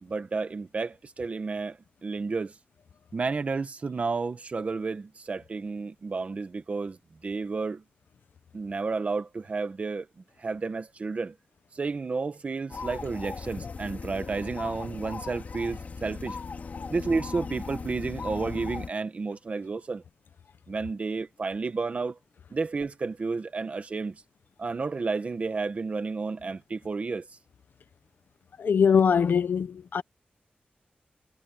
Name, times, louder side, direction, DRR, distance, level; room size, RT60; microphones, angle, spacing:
voice 1, 0.0-2.5 3.1-7.0 7.2-7.8 8.5-10.1 10.4-11.3 11.7-16.4 16.9-20.0 20.7-22.2 22.5-24.2 24.6-27.3, right 4 dB, 45° right, 1.4 m, -31 dB
sound 1, 12.7-18.9, left 4 dB, 55° left, 2.4 m, -38 dB
voice 2, 28.6-30.0, left 6 dB, 85° left, 1.1 m, -22 dB
wide cardioid pair, 155°, 3 cm